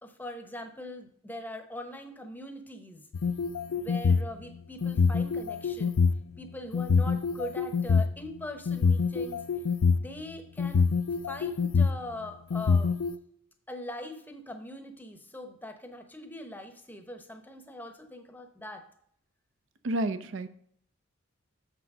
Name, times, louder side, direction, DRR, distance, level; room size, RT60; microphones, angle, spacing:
voice 1, 0.0-3.1 3.8-6.0 6.4-9.4 10.0-10.9 11.2-12.9 13.7-18.9, left 1 dB, 10° left, 6 dB, 0.8 m, -41 dB
sound 1, 3.1-4.3 4.8-6.1 6.7-8.0 8.7-10.0 10.6-12.0 12.5-13.1, left 5 dB, 75° left, 0.4 m, -25 dB
voice 2, 19.8-20.5, right 1 dB, 60° right, 12 dB, 0.5 m, -30 dB
7.0 x 6.1 x 5.3 m, 0.66 s
head